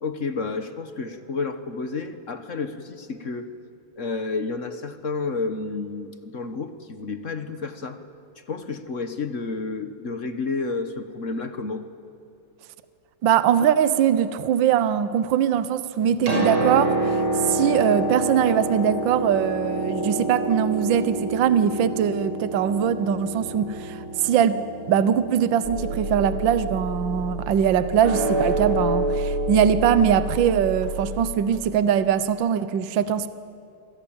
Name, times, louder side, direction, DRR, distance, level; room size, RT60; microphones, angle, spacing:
voice 1, 0.0-3.5 4.0-8.0 8.4-11.8, left 4 dB, 40° left, 9 dB, 1.3 m, -30 dB
voice 2, 13.2-17.2 17.4-24.6 24.9-33.3, right 9 dB, 65° right, 13 dB, 1.5 m, -22 dB
Piano, 16.0-29.7 30.8-30.9, right 2 dB, 85° right, 6.9 m, -29 dB
sound 1, 25.6-31.3, right 1 dB, 40° right, 6.0 m, -27 dB
28.0 x 24.5 x 8.8 m, 2.6 s
omnidirectional pair, 2.4 m